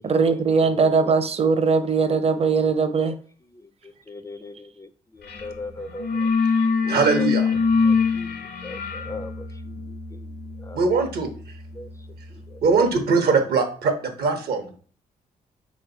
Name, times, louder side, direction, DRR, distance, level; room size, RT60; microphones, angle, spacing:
voice 1, 0.0-3.1, right 5 dB, 40° right, 10 dB, 0.7 m, -20 dB
voice 2, 4.1-4.9 5.2-6.1 6.9-7.3 8.1-8.3 8.6-9.3 10.7-10.8 11.8-11.9, left 3 dB, 20° left, 11 dB, 0.4 m, -37 dB
sound 1, 5.3-5.5 5.8-12.4, left 5 dB, 75° left, 0.8 m, -25 dB
voice 3, 6.9-7.5 10.7-11.3 12.6-14.8, right 4 dB, 70° right, 6 dB, 1.0 m, -21 dB
4.0 x 3.1 x 3.8 m, 0.43 s
supercardioid pair, 55°, 17 cm